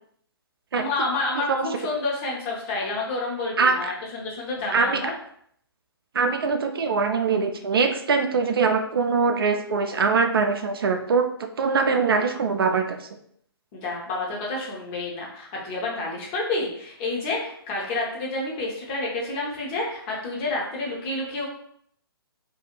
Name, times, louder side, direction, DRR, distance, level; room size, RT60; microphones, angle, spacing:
voice 1, 0.7-5.1 13.7-21.5, left 2 dB, 30° left, -3 dB, 0.8 m, -29 dB
voice 2, 3.6-3.9 4.7-5.0 6.1-13.0, right 4 dB, 70° right, 6 dB, 0.4 m, -22 dB
2.4 x 2.3 x 3.0 m, 0.68 s
figure-of-eight pair, 130°, 13 cm